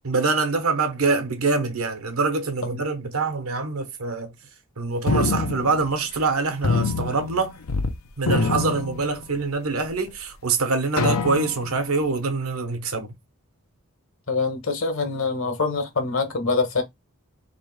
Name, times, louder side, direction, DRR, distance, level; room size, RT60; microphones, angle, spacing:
voice 1, 0.0-4.3 4.8-7.6 8.2-13.1, right 3 dB, 85° right, 1.1 m, -25 dB
sound 1, 5.1-6.3 6.6-7.9 8.2-9.5 10.1-10.2 11.0-11.8, left 3 dB, 90° left, 0.7 m, -25 dB
voice 2, 14.3-16.8, left 4 dB, 70° left, 1.4 m, -25 dB
3.2 x 3.0 x 4.6 m
head